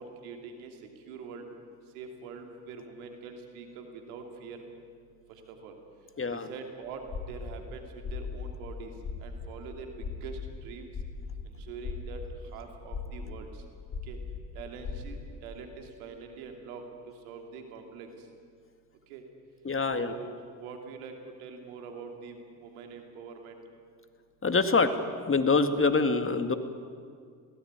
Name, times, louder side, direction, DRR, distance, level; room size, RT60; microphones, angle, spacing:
voice 1, 0.0-1.5 1.9-4.6 5.3-5.8 6.3-8.9 9.2-10.9 11.4-13.6 14.0-14.2 14.5-18.3 19.1-19.2 19.8-23.6, right 5 dB, 90° right, 4 dB, 2.9 m, -44 dB
voice 2, 6.2-6.5 19.7-20.2 24.4-25.0 25.3-26.6, left 4 dB, 30° left, 9 dB, 2.1 m, -25 dB
sound 1, 7.0-7.6 7.9-15.2, left 5 dB, 65° left, 4.5 m, -38 dB
21.5 x 18.0 x 9.5 m, 2.1 s
hypercardioid pair, 60°, 43 cm